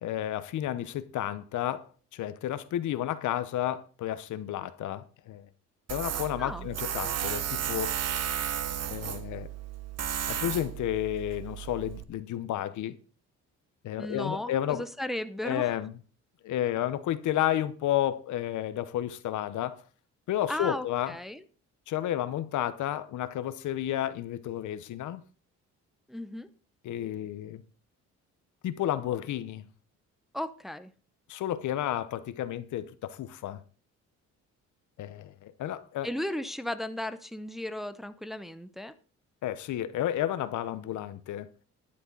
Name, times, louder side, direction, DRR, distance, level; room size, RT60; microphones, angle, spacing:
voice 1, 0.0-5.5 5.9-7.9 8.9-9.5 10.2-13.0 13.8-14.9 15.4-15.9 16.4-19.8 20.3-21.1 21.9-25.2 26.8-27.6 28.6-29.7 31.3-33.6 35.0-36.1 39.4-41.5, left 12 dB, 80° left, 0.9 m, -31 dB
Tools, 5.9-12.0, right 9 dB, 55° right, 1.0 m, -34 dB
voice 2, 14.0-15.7 20.5-21.4 26.1-26.5 30.3-30.9 36.0-38.9, left 1 dB, ahead, 0.7 m, -35 dB
12.0 x 10.0 x 4.0 m
cardioid pair, 90°, 30 cm